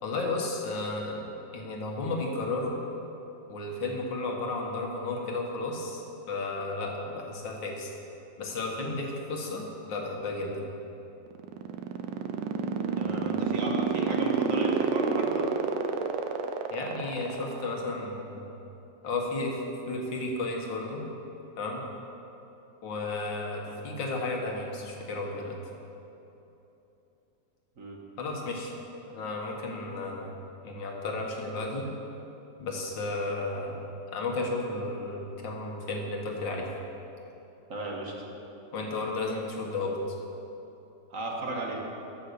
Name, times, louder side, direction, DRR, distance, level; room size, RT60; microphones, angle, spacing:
voice 1, 0.0-2.7 3.5-7.9 8.4-10.6 16.7-18.4 19.0-19.6 19.9-21.1 21.6-21.8 22.8-25.6 28.2-28.7 29.1-30.3 30.6-31.9 32.6-33.8 34.1-36.7 38.7-39.9, left 2 dB, 90° left, 0 dB, 2.1 m, -33 dB
sound 1, 11.3-17.9, right 7 dB, 90° right, 1.4 m, -27 dB
voice 2, 13.0-15.5 23.7-23.8 27.8-28.0 37.7-38.1 41.1-41.8, right 2 dB, 50° right, 0 dB, 1.6 m, -35 dB
14.0 x 5.6 x 6.7 m, 3.0 s
omnidirectional pair, 2.0 m